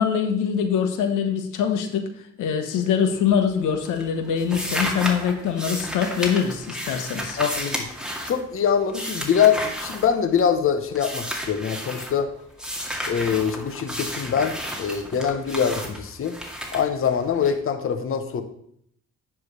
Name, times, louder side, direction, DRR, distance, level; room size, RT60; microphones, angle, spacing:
voice 1, 0.0-2.1 2.4-7.4, left 7 dB, 90° left, 6 dB, 1.2 m, -23 dB
sound 1, 3.1-3.6 3.8-10.6 10.9-12.1 12.6-17.5, equal, ahead, 1.9 m, -32 dB
voice 2, 7.4-7.9 8.2-12.3 13.0-16.3 16.7-18.4, left 7 dB, 45° left, 6 dB, 0.9 m, -23 dB
9.9 x 3.5 x 6.6 m, 0.69 s
cardioid pair, 90°, 30 cm